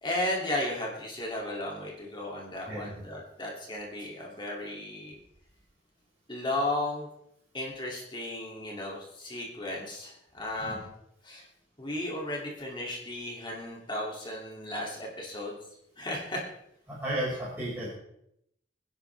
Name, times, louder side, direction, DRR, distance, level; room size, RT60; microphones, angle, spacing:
voice 1, 0.0-5.2 6.3-7.1 7.5-10.9 11.2-11.4 11.8-15.6 16.0-16.4, left 1 dB, 25° left, -2 dB, 2.8 m, -34 dB
voice 2, 2.7-3.0 10.6-10.8 16.9-17.9, right 1 dB, 10° right, -8 dB, 5.4 m, -33 dB
24.5 x 11.0 x 3.5 m, 0.78 s
head